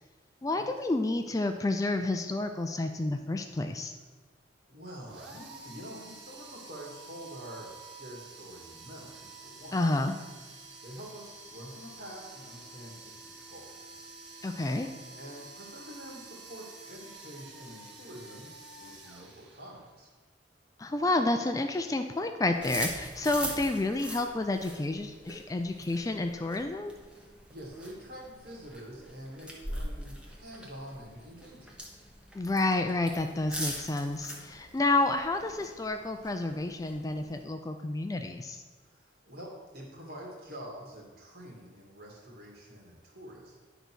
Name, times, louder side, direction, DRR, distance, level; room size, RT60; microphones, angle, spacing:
voice 1, 0.4-3.9 9.7-10.1 14.4-14.9 20.8-26.9 32.3-38.6, left 2 dB, 20° left, 6 dB, 0.3 m, -30 dB
voice 2, 4.7-9.9 10.8-14.1 14.4-14.5 15.2-20.1 27.1-31.8 38.8-43.6, equal, 55° right, -2 dB, 2.1 m, -47 dB
sound 1, 5.1-20.0, right 3 dB, 70° right, 1.5 m, -49 dB
sound 2, 22.5-37.4, equal, 5° right, 1.0 m, -42 dB
10.0 x 4.0 x 6.2 m, 1.3 s
head